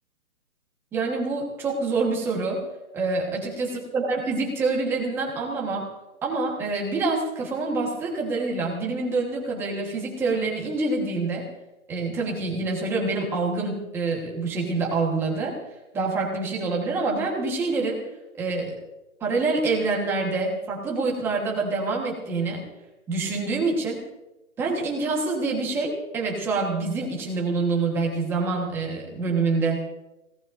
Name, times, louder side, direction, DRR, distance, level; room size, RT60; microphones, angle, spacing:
voice 1, 0.9-2.6 2.9-5.9 6.2-11.5 11.9-15.6 15.9-18.0 18.4-18.8 19.2-22.7 23.1-24.0 24.6-29.9, right 3 dB, 5° right, -2 dB, 1.3 m, -26 dB
25.5 x 17.5 x 2.6 m, 0.96 s
hypercardioid pair, 165°, 43 cm